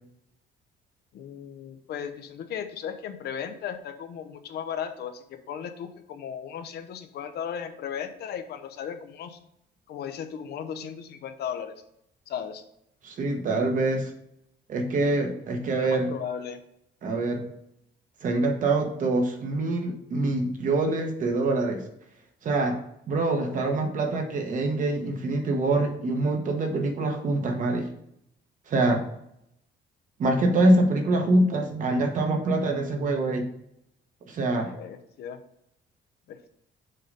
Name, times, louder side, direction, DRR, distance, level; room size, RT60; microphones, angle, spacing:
voice 1, 1.1-9.4 9.9-11.7 12.3-12.6 15.7-16.6 34.6-35.4 36.3-36.5, left 8 dB, 60° left, 8 dB, 0.7 m, -36 dB
voice 2, 13.0-14.1 14.7-16.1 17.0-17.4 18.2-21.8 22.4-22.8 23.1-27.9 28.7-29.0 30.2-33.5 34.3-34.7, right 2 dB, 45° right, 3 dB, 1.2 m, -25 dB
6.6 x 3.9 x 5.3 m, 0.77 s
cardioid pair, 170°, 19 cm